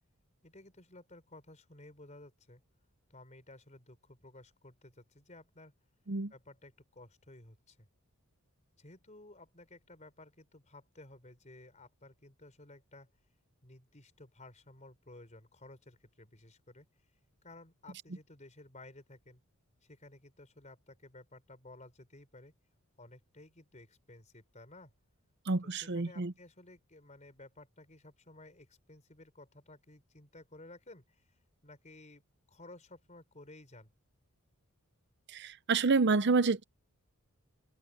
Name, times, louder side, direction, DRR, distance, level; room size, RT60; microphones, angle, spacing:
voice 1, 0.4-2.6 3.1-5.7 6.3-7.9 8.8-13.1 13.6-16.9 17.4-19.4 19.8-22.5 23.0-24.9 25.6-31.3 31.6-32.2 32.5-33.9, left 2 dB, 30° left, 4.6 m, -55 dB
voice 2, 25.5-26.3 35.3-36.6, right 4 dB, 50° right, 0.7 m, -28 dB
head